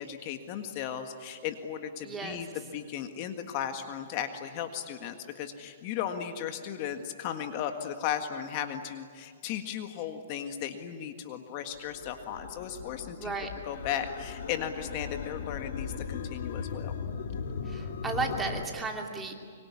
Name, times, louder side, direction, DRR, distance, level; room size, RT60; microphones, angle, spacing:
voice 1, 0.0-13.3 13.7-16.9, left 9 dB, 35° left, 7 dB, 1.7 m, -36 dB
voice 2, 2.0-2.4 13.2-13.5 17.6-19.3, right 3 dB, 10° right, 2 dB, 2.7 m, -34 dB
sound 1, 11.7-18.7, left 6 dB, 60° left, 2.8 m, -38 dB
24.5 x 24.5 x 9.8 m, 2.1 s
hypercardioid pair, 155°, 0 cm